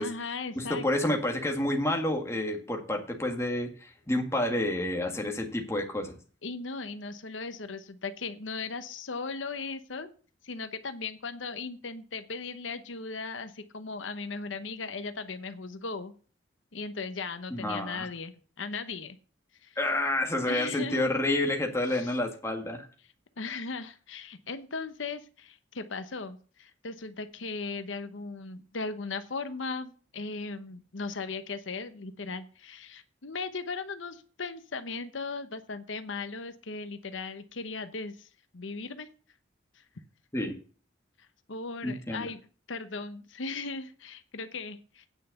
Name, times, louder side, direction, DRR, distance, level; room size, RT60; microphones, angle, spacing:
voice 1, 0.0-1.1 6.4-10.1 10.4-16.1 16.7-19.2 19.6-19.8 20.5-21.1 21.9-22.2 23.4-38.3 38.5-39.1 39.8-39.9 41.5-42.4 42.7-45.1, left 4 dB, 80° left, 10 dB, 0.9 m, -37 dB
voice 2, 0.5-6.2 17.5-18.1 19.8-22.9 40.3-40.5 41.8-42.2, left 1 dB, 15° left, 2 dB, 1.7 m, -29 dB
9.3 x 5.7 x 7.8 m, 0.40 s
head